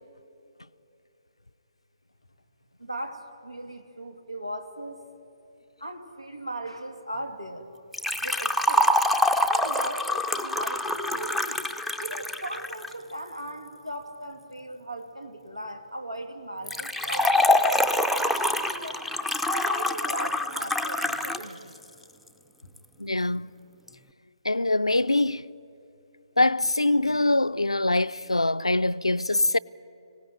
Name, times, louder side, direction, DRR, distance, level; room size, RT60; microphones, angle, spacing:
voice 1, 2.8-5.0 5.8-7.8 8.2-8.9 9.4-11.6 12.0-19.0 19.5-21.8, right 1 dB, 90° right, 2.6 m, -38 dB
Liquid, 7.9-12.9 16.7-21.5 21.8-21.9 22.8-22.9, left 1 dB, ahead, 0.6 m, -25 dB
voice 2, 23.0-23.5 24.4-25.5 26.4-29.6, left 2 dB, 80° left, 0.5 m, -23 dB
25.0 x 17.5 x 9.4 m
figure-of-eight pair, 135°, 3 cm